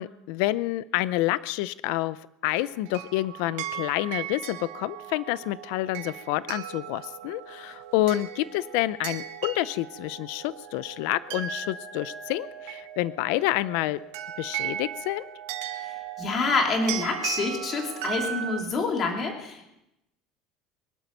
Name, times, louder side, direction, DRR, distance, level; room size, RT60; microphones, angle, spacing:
voice 1, 0.0-14.0 14.4-15.3, left 16 dB, 70° left, 17 dB, 0.5 m, -28 dB
sound 1, 2.6-18.6, right 10 dB, 75° right, 1.9 m, -37 dB
voice 2, 15.7-19.7, left 3 dB, 30° left, 2 dB, 2.9 m, -27 dB
23.0 x 11.5 x 5.3 m, 0.87 s
cardioid pair, 165°, 0 cm